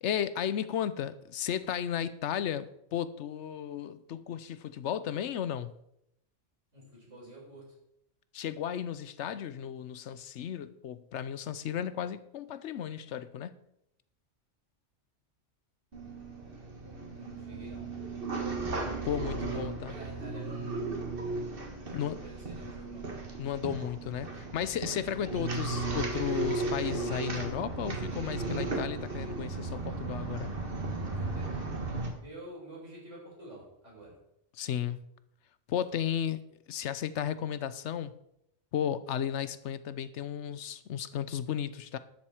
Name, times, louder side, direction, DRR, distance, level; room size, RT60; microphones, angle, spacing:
voice 1, 0.0-5.8 8.3-13.6 19.0-19.9 21.9-22.2 23.4-30.6 34.5-35.0 35.7-36.4 36.7-38.1 38.7-42.0, left 9 dB, 75° left, 14 dB, 1.0 m, -34 dB
voice 2, 6.7-7.8 16.9-18.0 19.5-20.9 21.8-23.1 31.2-31.6 32.1-34.2, equal, 90° right, -4 dB, 5.0 m, -49 dB
sound 1, 15.9-32.1, right 3 dB, 50° right, 1.8 m, -35 dB
12.0 x 7.2 x 4.9 m, 0.78 s
omnidirectional pair, 1.2 m